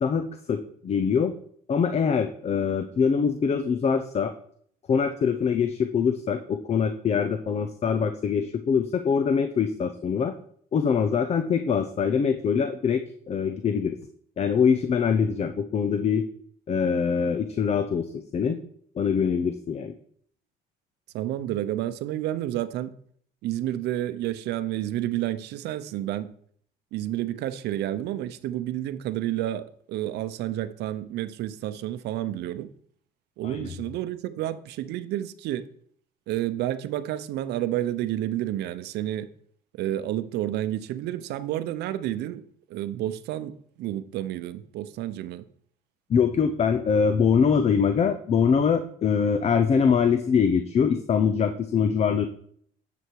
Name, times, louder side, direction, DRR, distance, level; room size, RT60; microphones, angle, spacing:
voice 1, 0.0-1.3 1.7-4.3 4.9-10.3 10.7-14.0 14.4-16.2 16.7-18.6 19.0-19.9 33.4-33.7 46.1-52.3, left 6 dB, 40° left, 0.7 m, -23 dB
voice 2, 21.1-22.9 23.4-26.3 26.9-32.7 33.4-35.7 36.3-39.3 39.8-42.4 42.7-45.4, right 13 dB, 80° right, 0.7 m, -30 dB
9.8 x 7.1 x 4.7 m
cardioid pair, 110°, 17 cm